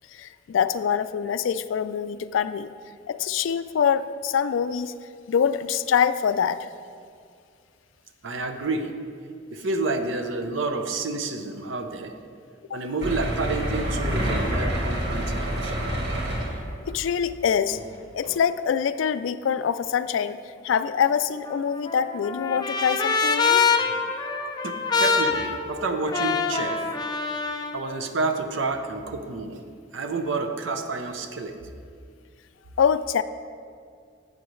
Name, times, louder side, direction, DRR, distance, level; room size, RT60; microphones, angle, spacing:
voice 1, 0.1-2.7 3.1-4.9 5.3-6.7 12.7-12.8 16.9-17.8 18.1-20.4 20.6-24.0 32.8-33.2, left 7 dB, 80° left, 14 dB, 0.3 m, -24 dB
voice 2, 8.2-8.9 9.5-12.1 12.7-15.8 24.6-26.9 27.7-29.6 29.9-31.6, right 3 dB, 85° right, 6 dB, 0.7 m, -29 dB
sound 1, 13.0-16.9 17.7-17.8 18.2-18.3, equal, 60° right, 1.9 m, -27 dB
Trumpet, 21.5-27.8, left 5 dB, 20° left, 0.5 m, -25 dB
11.0 x 7.7 x 3.1 m, 2.2 s
head